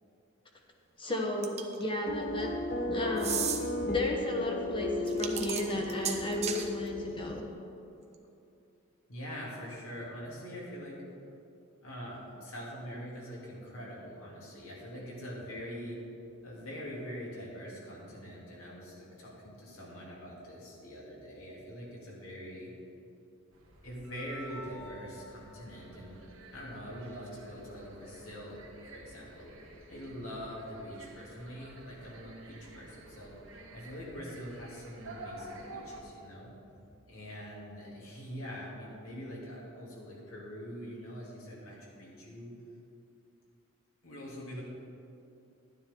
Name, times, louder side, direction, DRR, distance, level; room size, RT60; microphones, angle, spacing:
voice 1, 1.0-2.5 2.9-3.4 3.8-7.4, left 1 dB, 25° left, 1 dB, 1.1 m, -33 dB
sound 1, 1.4-1.8 3.2-3.6 5.1-6.7, right 8 dB, 30° right, 0.7 m, -34 dB
sound 2, 2.1-7.4, left 2 dB, 40° left, 0.6 m, -35 dB
voice 2, 9.1-11.0 11.8-16.0 16.4-22.7 23.8-26.2 26.5-28.6 28.9-29.6 29.9-36.5 37.1-42.5 44.0-44.6, equal, 75° left, -5 dB, 2.8 m, -44 dB
sound 3, 23.5-36.0, right 1 dB, 70° right, 1.4 m, -50 dB
12.0 x 9.7 x 3.8 m, 2.7 s
head